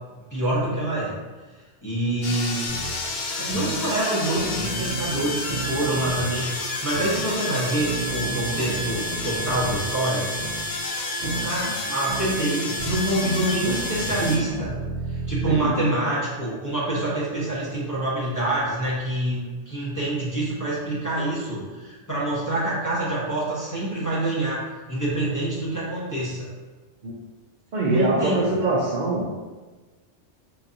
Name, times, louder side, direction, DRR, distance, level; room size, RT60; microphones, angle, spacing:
voice 1, 0.3-1.1 1.8-2.6 3.4-10.3 11.2-14.7 15.1-24.6 24.9-26.5 27.8-28.5, right 1 dB, 20° left, -8 dB, 0.8 m, -26 dB
sound 1, 2.2-14.4, left 2 dB, 55° left, 0.5 m, -30 dB
sound 2, 2.7-2.9 3.5-3.8 4.4-6.3 6.9-7.2 7.8-9.8 10.4-10.6 11.2-11.5 12.1-12.3 12.8-15.6, right 3 dB, 85° right, 0.9 m, -33 dB
voice 2, 27.7-29.3, right 2 dB, 60° right, -4 dB, 0.5 m, -23 dB
3.8 x 2.7 x 2.5 m, 1.3 s
omnidirectional pair, 1.2 m